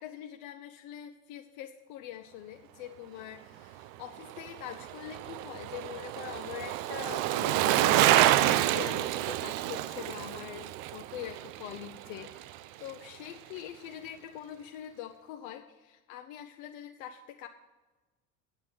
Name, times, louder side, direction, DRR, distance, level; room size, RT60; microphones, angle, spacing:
voice 1, 0.0-17.5, left 11 dB, 45° left, 4 dB, 0.7 m, -43 dB
Bicycle, 4.2-12.6 12.9-13.0, right 14 dB, 40° right, 0.4 m, -28 dB
9.6 x 7.6 x 6.1 m, 1.2 s
figure-of-eight pair, 75°, 43 cm